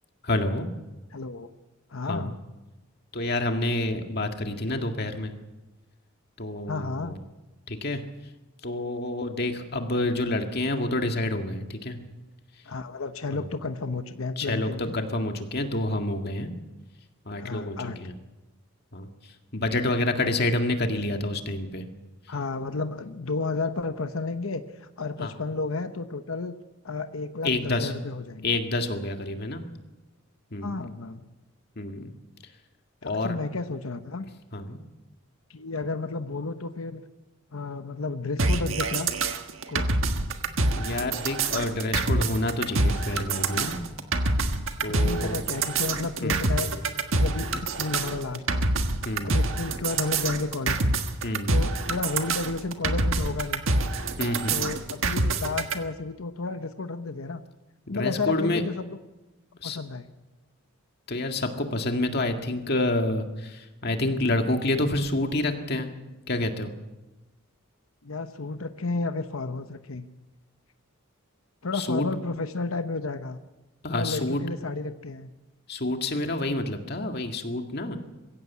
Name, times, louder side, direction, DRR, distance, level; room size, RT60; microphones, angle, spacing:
voice 1, 0.2-0.7 2.0-2.3 3.1-5.3 6.4-7.1 7.7-8.0 8.6-12.0 13.3-13.5 14.4-16.5 17.3-18.1 18.9-19.1 19.5-21.9 25.2-25.3 27.4-27.9 28.4-29.6 30.5-30.9 31.8-32.1 33.0-33.4 34.5-34.8 40.7-43.8 44.8-45.4 46.2-46.4 49.1-49.4 51.2-51.5 54.2-54.7 57.9-58.6 59.6-59.8 61.1-65.9 66.3-66.7 71.7-72.1 73.8-74.4 75.7-78.0, left 2 dB, 50° left, 5 dB, 2.0 m, -28 dB
voice 2, 1.1-1.5 1.9-2.4 6.7-7.2 12.7-14.9 17.4-18.0 22.3-26.6 26.8-28.5 30.6-31.2 33.0-34.3 35.5-37.0 37.5-39.1 39.7-40.0 45.0-46.7 47.1-48.6 49.2-51.0 51.5-53.6 54.5-57.4 57.9-59.0 59.6-60.1 68.0-70.1 71.6-73.4 74.0-75.3, left 3 dB, 90° left, 9 dB, 1.0 m, -32 dB
sound 1, 38.4-55.7, right 2 dB, 75° right, 1.6 m, -26 dB
22.0 x 16.0 x 8.3 m, 1.1 s
head